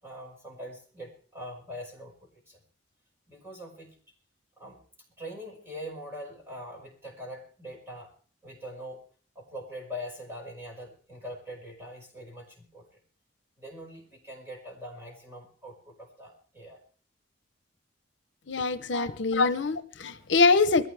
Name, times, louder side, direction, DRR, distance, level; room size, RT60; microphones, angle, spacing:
voice 1, 0.0-2.6 3.3-4.0 4.6-4.8 5.2-8.1 8.4-9.0 9.4-12.9 13.6-16.8 18.9-19.4, equal, 15° right, -1 dB, 5.5 m, -43 dB
voice 2, 18.5-20.9, left 4 dB, 70° left, 12 dB, 0.8 m, -24 dB
22.0 x 15.0 x 3.4 m, 0.42 s
head